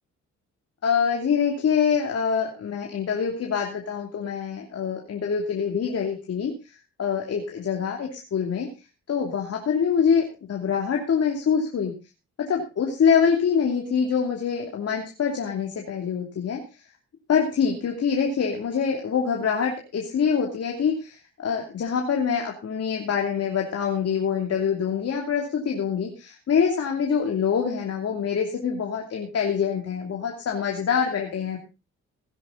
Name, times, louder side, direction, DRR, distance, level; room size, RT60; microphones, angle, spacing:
voice 1, 0.8-8.7 9.1-11.9 12.4-16.8 17.3-31.6, left 6 dB, 55° left, 1 dB, 2.8 m, -25 dB
17.5 x 10.5 x 4.0 m, 0.30 s
cardioid pair, 90°, 30 cm